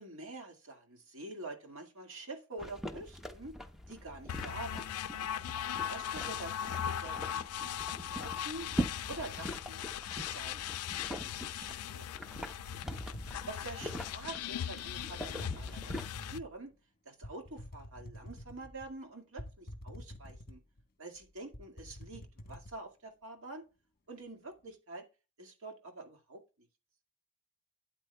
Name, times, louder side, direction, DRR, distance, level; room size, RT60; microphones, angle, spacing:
voice 1, 0.0-3.5 3.8-4.9 5.9-7.7 8.1-8.7 9.1-9.8 10.1-12.1 13.5-15.9 16.3-16.7 17.1-20.6 21.0-23.6 24.1-25.1 25.4-26.7, right 2 dB, 60° right, 4 dB, 2.0 m, -46 dB
yellowstone boiling mud, 2.6-16.1, right 1 dB, ahead, 0.8 m, -43 dB
sound 1, 4.3-16.4, left 10 dB, 80° left, 0.3 m, -39 dB
sound 2, 12.7-14.1 14.9-15.0 15.4-16.6 17.2-18.9 19.4-20.8 21.2-21.3 21.5-22.7, left 1 dB, 40° left, 1.1 m, -47 dB
12.5 x 8.7 x 2.3 m, 0.31 s
head